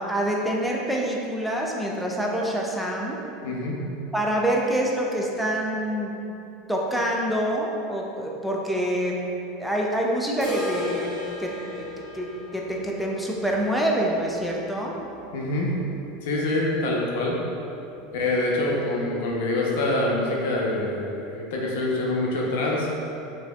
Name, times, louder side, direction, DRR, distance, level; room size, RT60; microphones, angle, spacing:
voice 1, 0.0-3.2 4.1-6.2 6.7-9.2 9.6-11.6 12.0-15.0, right 1 dB, ahead, -2 dB, 0.4 m, -26 dB
voice 2, 3.4-3.8 15.3-15.7 16.2-17.4 18.1-22.9, left 2 dB, 75° left, -3 dB, 0.6 m, -25 dB
sound 1, 10.4-16.2 16.5-16.6 17.0-17.1 17.6-17.7 18.5-18.6, left 1 dB, 35° right, 1.5 m, -35 dB
4.3 x 2.7 x 2.2 m, 2.8 s
supercardioid pair, 140°, 0 cm